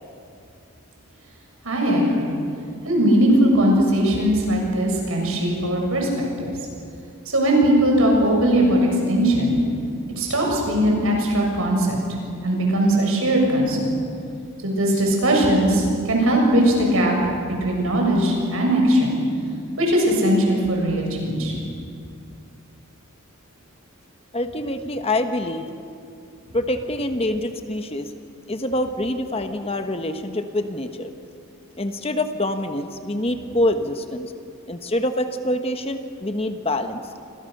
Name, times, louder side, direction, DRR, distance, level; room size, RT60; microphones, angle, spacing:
voice 1, 1.6-2.3 2.9-6.5 7.3-9.6 10.2-12.0 12.4-14.0 14.6-17.1 17.6-19.2 19.8-21.5, right 1 dB, 70° right, 0 dB, 7.1 m, -19 dB
voice 2, 24.3-25.7 26.5-28.1 28.5-31.1 31.8-34.3 34.7-37.0, left 1 dB, 25° left, 7 dB, 1.2 m, -25 dB
29.5 x 25.0 x 6.7 m, 2.5 s
head